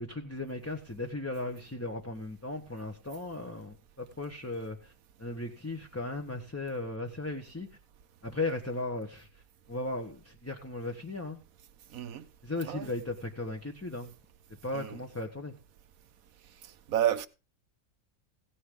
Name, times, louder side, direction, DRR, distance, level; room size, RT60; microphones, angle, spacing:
voice 1, 0.0-4.9 5.2-7.7 8.2-9.3 9.7-11.4 12.4-14.1 14.6-15.5, left 2 dB, 10° left, 1.0 m, -36 dB
voice 2, 11.9-12.2 12.6-12.9 14.7-14.9 16.9-17.3, right 11 dB, 75° right, 1.3 m, -30 dB
16.5 x 9.9 x 3.8 m
omnidirectional pair, 1.5 m